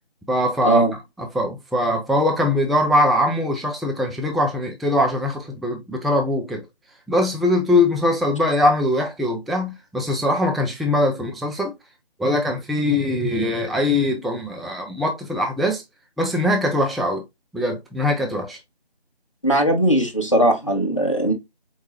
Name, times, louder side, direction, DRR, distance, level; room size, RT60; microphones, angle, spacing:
voice 1, 0.3-0.8 1.2-6.6 7.1-11.7 12.2-15.8 16.2-17.2 17.5-18.6, left 1 dB, ahead, 0.4 m, -21 dB
voice 2, 19.4-21.3, right 1 dB, 30° left, 0.7 m, -19 dB
4.5 x 2.8 x 2.7 m
figure-of-eight pair, 175°, 31 cm